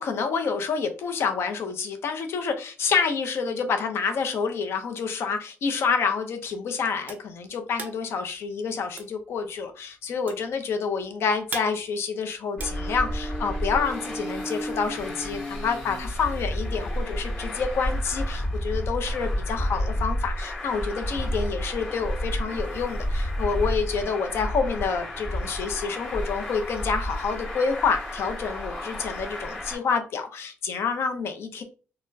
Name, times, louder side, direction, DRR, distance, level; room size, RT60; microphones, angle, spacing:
voice 1, 0.0-31.6, left 5 dB, 55° left, 6 dB, 0.6 m, -28 dB
sound 1, 6.4-13.6, right 4 dB, 30° right, 0.5 m, -41 dB
Traffic noise roadway noise, 12.6-29.7, equal, 35° left, 1.5 m, -31 dB
4.1 x 2.1 x 2.6 m, 0.36 s
cardioid pair, 165°, 5 cm